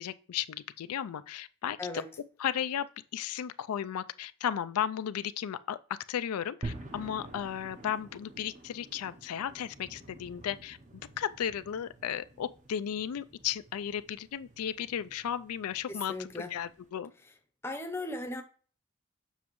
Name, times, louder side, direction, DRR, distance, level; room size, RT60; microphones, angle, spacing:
voice 1, 0.0-1.8 2.4-2.9 3.1-10.8 11.2-17.1, left 9 dB, 90° left, 0.4 m, -35 dB
sound 1, 6.6-16.9, right 2 dB, 35° right, 0.7 m, -48 dB
voice 2, 15.9-16.5 17.6-18.4, left 2 dB, 10° left, 0.6 m, -37 dB
7.3 x 5.9 x 3.0 m
head